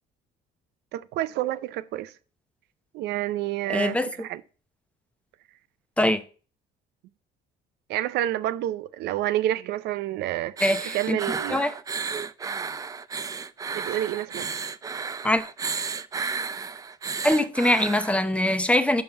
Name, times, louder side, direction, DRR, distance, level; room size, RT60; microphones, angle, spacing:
voice 1, 0.9-2.1 2.9-4.4 7.9-10.5 10.9-11.6 13.7-14.6, right 13 dB, 80° right, 0.5 m, -29 dB
voice 2, 3.7-4.1 6.0-6.2 10.6-11.7 15.2-15.4 17.2-19.0, left 1 dB, 5° left, 0.7 m, -23 dB
sound 1, 10.6-18.1, right 5 dB, 20° right, 0.3 m, -33 dB
5.7 x 5.5 x 5.5 m
cardioid pair, 110°, 17 cm